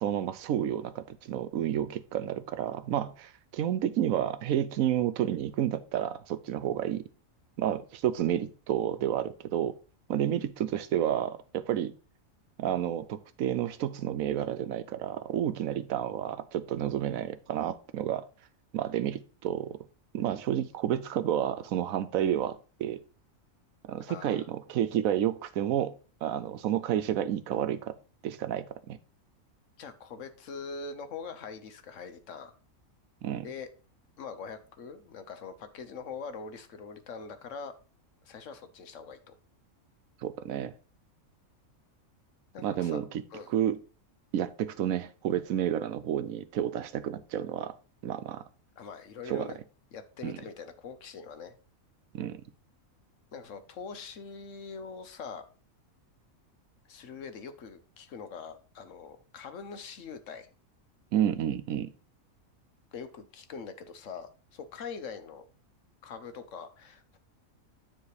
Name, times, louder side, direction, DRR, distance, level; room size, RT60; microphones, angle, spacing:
voice 1, 0.0-7.0 7.6-9.7 10.1-11.9 12.6-18.2 18.7-19.8 20.1-23.0 23.9-25.9 26.2-27.9 28.2-29.0 33.2-33.5 40.2-40.7 42.6-43.2 43.5-43.8 44.3-47.7 48.0-48.4 49.3-49.5 50.2-50.4 52.1-52.4 61.1-61.9, right 10 dB, 90° right, 1.1 m, -30 dB
voice 2, 24.1-24.5 29.8-32.6 33.4-33.7 34.2-37.7 38.2-39.3 42.5-43.0 43.3-43.5 48.8-49.6 49.9-51.5 53.3-55.4 56.9-60.5 62.9-65.4 66.0-67.2, left 5 dB, 65° left, 1.2 m, -43 dB
9.6 x 3.4 x 4.8 m
omnidirectional pair, 1.4 m